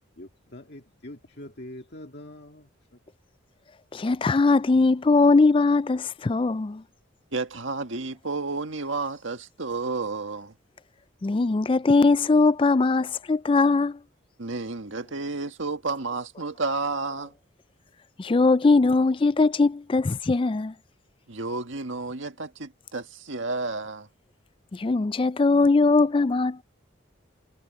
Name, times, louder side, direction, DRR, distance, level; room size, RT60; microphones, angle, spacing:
voice 1, 0.2-2.6, left 1 dB, 55° left, 2.0 m, -43 dB
voice 2, 3.9-6.8 11.2-14.0 18.2-20.7 24.7-26.6, left 3 dB, 25° left, 0.4 m, -20 dB
voice 3, 7.3-10.5 14.4-17.3 21.3-24.1, right 3 dB, 75° right, 1.8 m, -31 dB
head